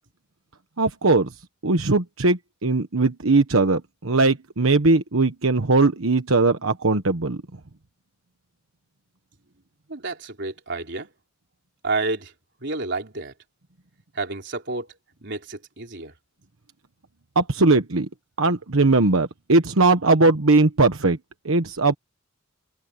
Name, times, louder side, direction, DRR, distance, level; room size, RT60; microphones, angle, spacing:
voice 1, 0.8-1.3 1.6-7.4 17.3-18.1 18.4-21.2 21.4-21.9, right 3 dB, 85° right, 1.2 m, -19 dB
voice 2, 9.9-11.1 11.8-12.3 12.6-13.3 14.1-14.9 15.2-16.1, right 3 dB, 60° right, 3.9 m, -30 dB
head